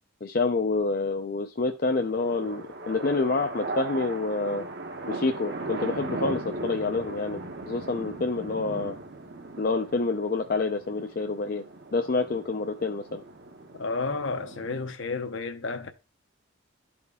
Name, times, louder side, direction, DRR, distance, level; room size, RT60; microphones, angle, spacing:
voice 1, 0.2-4.6 5.1-7.4 7.7-8.9 9.6-11.6 11.9-13.2, left 3 dB, 45° left, 0.5 m, -27 dB
sound 1, 1.9-14.9, right 2 dB, 50° right, 0.9 m, -38 dB
voice 2, 13.8-15.9, left 3 dB, 65° left, 0.8 m, -31 dB
12.0 x 4.3 x 3.5 m
head